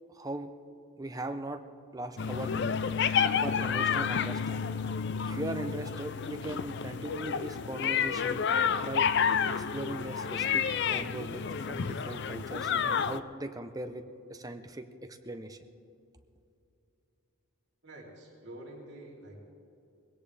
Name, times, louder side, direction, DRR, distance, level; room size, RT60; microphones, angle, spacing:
voice 1, 0.1-0.5 1.0-1.6 1.9-2.8 3.4-4.8 5.2-8.4 8.8-9.1 9.5-14.0 14.3-15.6, right 1 dB, 15° right, 7 dB, 0.7 m, -39 dB
sound 1, 2.2-13.2, left 7 dB, 50° left, 0.4 m, -30 dB
voice 2, 17.8-19.4, right 1 dB, 50° right, -3 dB, 3.4 m, -47 dB
20.5 x 17.0 x 3.4 m, 2.7 s
head